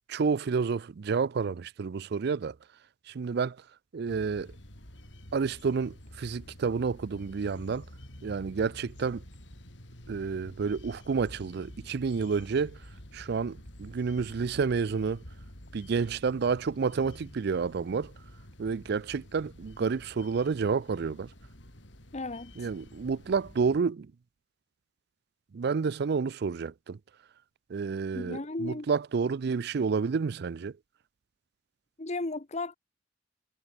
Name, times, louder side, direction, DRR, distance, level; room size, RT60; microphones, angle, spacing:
voice 1, 0.1-2.5 3.1-3.6 3.9-4.5 5.3-7.8 8.2-9.2 10.1-12.8 13.1-15.2 15.7-18.1 18.6-21.3 22.6-24.1 25.5-27.0 27.7-30.7, right 5 dB, 60° right, 0.4 m, -30 dB
sound 1, 4.1-23.8, left 1 dB, 70° left, 7.8 m, -49 dB
voice 2, 22.1-22.7 28.1-28.9 32.0-32.8, left 2 dB, 35° left, 1.1 m, -35 dB
head